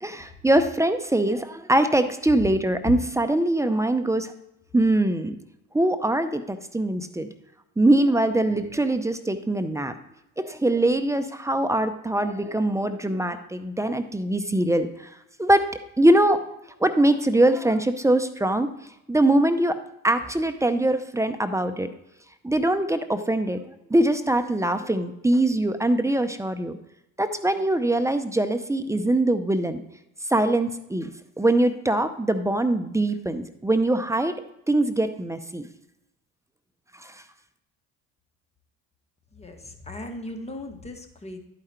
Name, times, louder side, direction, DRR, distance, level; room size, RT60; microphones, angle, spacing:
voice 1, 0.0-4.3 4.7-5.4 5.7-7.3 7.8-9.9 10.4-15.1 15.4-15.7 16.0-16.4 16.8-18.7 19.1-19.8 20.0-21.9 22.4-23.6 23.9-26.8 27.2-29.8 30.3-34.3 34.7-35.6 37.0-37.1, right 1 dB, 10° right, 9 dB, 0.6 m, -22 dB
voice 2, 39.3-41.4, left 1 dB, 20° left, 5 dB, 1.5 m, -38 dB
11.0 x 5.0 x 4.4 m, 0.85 s
supercardioid pair, 80°, 34 cm